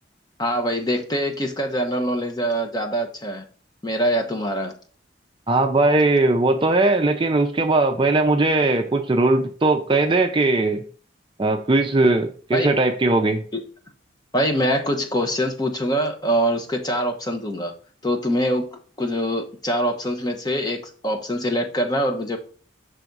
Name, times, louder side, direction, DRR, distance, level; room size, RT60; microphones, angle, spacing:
voice 1, 0.4-3.5 3.8-4.7 12.5-12.7 13.5-13.6 14.3-17.7 18.0-18.6 19.0-22.4, equal, 20° left, 4 dB, 0.9 m, -24 dB
voice 2, 5.5-10.8 11.4-13.4, right 2 dB, 25° right, 6 dB, 0.5 m, -19 dB
6.0 x 3.4 x 5.2 m, 0.42 s
head